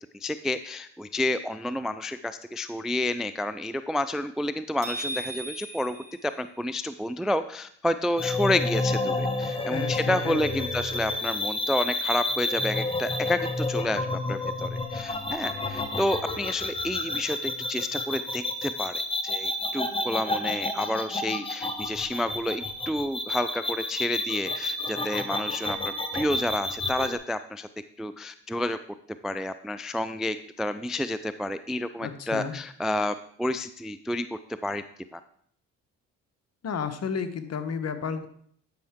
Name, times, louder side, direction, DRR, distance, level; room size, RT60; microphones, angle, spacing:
voice 1, 0.2-6.0 6.2-25.8 26.1-27.7 28.0-28.8 29.2-34.8 35.1-35.2, left 1 dB, ahead, 12 dB, 0.3 m, -30 dB
sound 1, 4.8-7.0, right 1 dB, 50° right, 3.3 m, -37 dB
sound 2, 8.2-27.2, left 2 dB, 15° left, 1.3 m, -30 dB
voice 2, 9.7-10.7 32.0-32.5 36.6-38.3, left 6 dB, 50° left, 9 dB, 1.1 m, -32 dB
10.5 x 5.6 x 3.6 m, 0.64 s
supercardioid pair, 65°, 33 cm